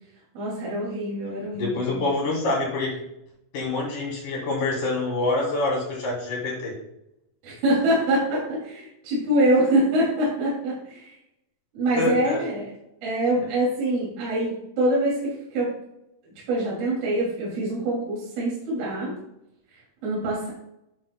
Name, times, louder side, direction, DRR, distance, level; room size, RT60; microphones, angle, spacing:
voice 1, 0.3-2.0 7.4-11.2 11.7-12.7 13.0-15.7 16.5-19.1 20.0-20.5, right 1 dB, 55° right, -6 dB, 4.0 m, -24 dB
voice 2, 1.5-3.0 3.5-6.7 11.9-12.4, left 2 dB, 55° left, -3 dB, 3.0 m, -26 dB
10.5 x 7.1 x 2.2 m, 0.83 s
omnidirectional pair, 5.7 m